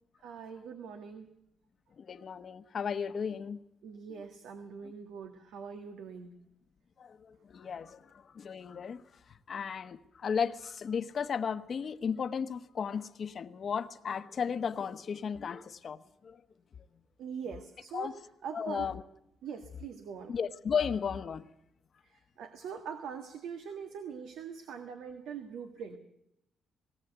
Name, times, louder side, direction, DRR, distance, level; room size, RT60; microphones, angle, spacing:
voice 1, 0.2-1.3 3.8-6.3 17.2-18.2 18.4-18.9 19.4-20.3 22.0-26.0, right 7 dB, 85° right, 6 dB, 1.7 m, -43 dB
voice 2, 2.0-3.6 7.0-9.0 9.5-16.0 16.2-16.4 17.9-18.1 18.5-19.0 20.3-21.5, left 6 dB, 50° left, 10 dB, 1.0 m, -34 dB
19.0 x 19.0 x 8.1 m, 0.79 s
cardioid pair, 105°, 0 cm